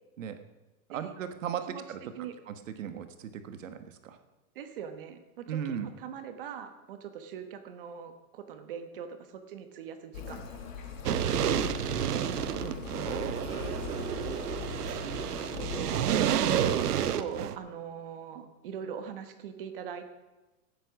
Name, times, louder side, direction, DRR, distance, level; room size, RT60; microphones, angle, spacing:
voice 1, 0.9-2.0 2.5-4.2 5.5-5.9 11.3-11.4 12.6-13.1, right 8 dB, 55° right, 9 dB, 1.4 m, -37 dB
voice 2, 4.5-10.6 11.1-12.1 15.4-16.2 16.8-20.0, right 8 dB, 35° right, 8 dB, 1.2 m, -41 dB
sound 1, 10.1-16.9, left 6 dB, 60° left, 2.9 m, -40 dB
sound 2, 11.1-17.6, right 10 dB, 85° right, 1.0 m, -30 dB
16.5 x 8.9 x 5.9 m, 1.1 s
supercardioid pair, 180°, 45 cm